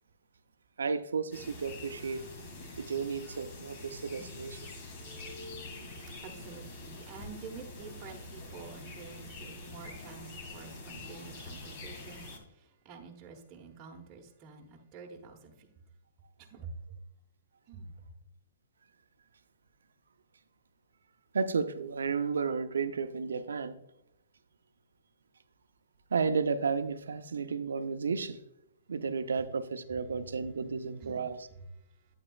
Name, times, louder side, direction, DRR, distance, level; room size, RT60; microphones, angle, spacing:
voice 1, 0.8-2.2 2.8-4.6 21.3-23.8 26.1-28.4 28.9-31.4, right 5 dB, 85° right, 0.6 m, -32 dB
sound 1, 1.3-12.4, left 2 dB, 50° left, 1.9 m, -45 dB
voice 2, 6.2-15.7 16.4-16.8 17.7-17.9 31.0-31.3, right 5 dB, 30° right, 1.0 m, -48 dB
8.7 x 8.1 x 2.3 m
hypercardioid pair, 135°, 0 cm